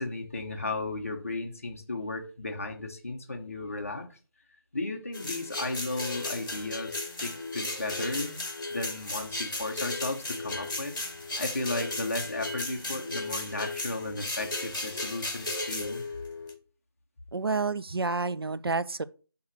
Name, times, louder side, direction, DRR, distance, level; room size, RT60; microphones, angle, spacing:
voice 1, 0.0-4.2 4.7-8.4 8.7-11.0 11.4-16.0, left 2 dB, 35° left, 1.0 m, -35 dB
sound 1, 5.1-16.5, left 2 dB, 55° left, 1.4 m, -35 dB
voice 2, 17.3-19.1, right 3 dB, 70° right, 0.5 m, -29 dB
7.1 x 3.1 x 6.0 m
figure-of-eight pair, 175°, 13 cm